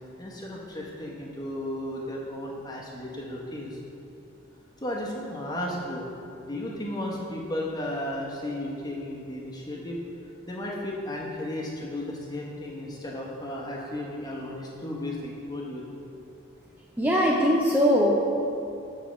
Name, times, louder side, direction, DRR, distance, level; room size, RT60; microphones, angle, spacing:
voice 1, 0.2-3.8 4.8-6.1 6.4-10.0 10.5-16.0, left 1 dB, 20° left, -3 dB, 1.0 m, -34 dB
voice 2, 17.0-18.3, equal, 10° right, -3 dB, 0.4 m, -21 dB
7.2 x 4.5 x 6.3 m, 2.7 s
head